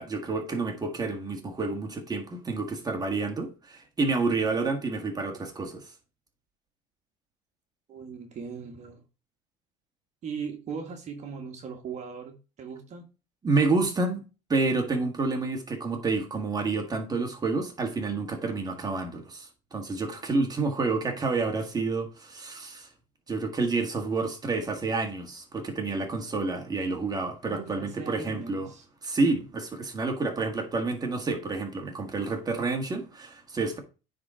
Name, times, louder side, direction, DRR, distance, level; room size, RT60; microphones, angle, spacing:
voice 1, 0.0-5.9 13.4-14.2 14.5-22.9 23.3-28.7 29.0-33.8, right 3 dB, 25° right, 1.7 m, -29 dB
voice 2, 7.9-9.0 10.2-13.1 27.5-28.9, right 6 dB, 45° right, 1.5 m, -39 dB
9.3 x 3.9 x 3.8 m
supercardioid pair, 110°, 17 cm